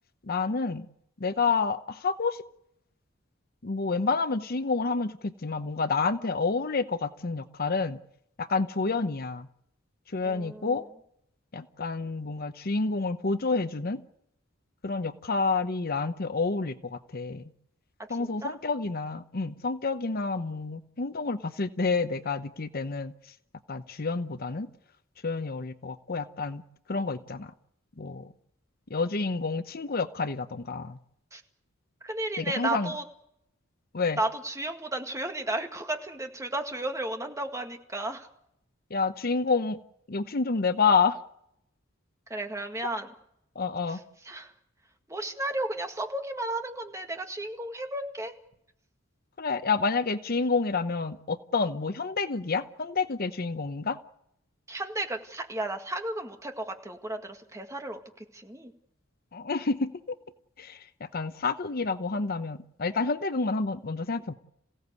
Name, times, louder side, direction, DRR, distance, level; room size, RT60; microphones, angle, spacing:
voice 1, 0.2-0.9 1.2-2.4 3.6-8.0 8.4-9.5 10.1-10.9 11.5-14.0 14.8-17.5 18.1-23.1 23.7-24.7 25.2-26.6 26.9-27.5 28.0-28.3 28.9-31.0 32.4-32.9 33.9-34.2 38.9-39.8 40.1-41.2 43.5-44.0 49.4-54.0 59.3-60.2 60.6-64.3, left 4 dB, 50° left, 11 dB, 0.8 m, -29 dB
voice 2, 10.2-10.8 18.2-18.6 31.3-31.4 32.0-33.0 34.2-38.3 42.3-43.1 43.9-44.0 44.2-44.5 45.1-48.3 54.7-58.7, right 1 dB, 15° right, 4 dB, 2.0 m, -33 dB
27.0 x 16.5 x 8.3 m, 0.79 s
head